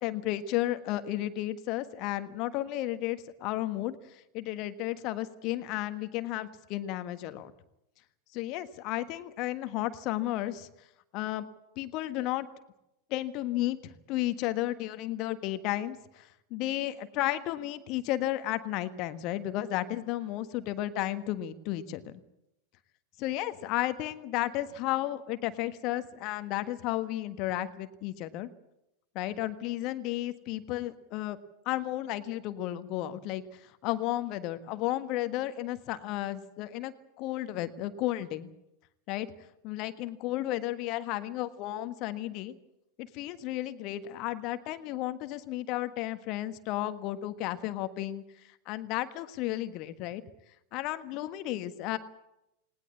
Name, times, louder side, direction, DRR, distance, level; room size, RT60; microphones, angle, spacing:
voice 1, 0.0-7.5 8.3-10.7 11.1-11.5 11.8-12.5 13.1-22.1 23.2-28.5 29.1-31.4 31.6-38.5 39.1-39.3 39.6-42.5 43.0-48.2 48.6-50.2 50.7-52.0, left 14 dB, 40° left, 11 dB, 1.5 m, -33 dB
20.0 x 19.5 x 8.4 m, 0.85 s
figure-of-eight pair, 90°, 0 cm